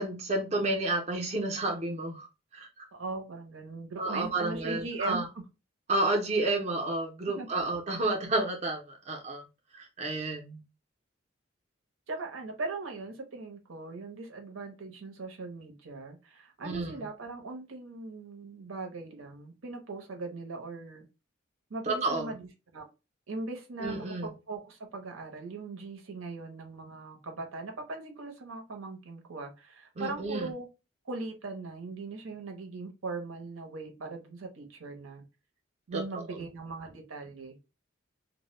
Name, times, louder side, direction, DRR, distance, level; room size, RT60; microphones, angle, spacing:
voice 1, 0.0-2.3 2.5-2.7 4.0-5.3 5.9-9.4 9.7-10.6 16.6-17.1 21.9-22.3 23.8-24.3 30.0-30.5 35.9-36.0 36.3-36.4, right 2 dB, 35° right, 0.5 m, -31 dB
voice 2, 2.9-5.4 7.2-7.5 12.1-21.1 21.7-22.9 23.3-30.7 31.0-35.2 35.9-37.6, right 3 dB, 90° right, 0.7 m, -40 dB
2.1 x 2.0 x 3.0 m
head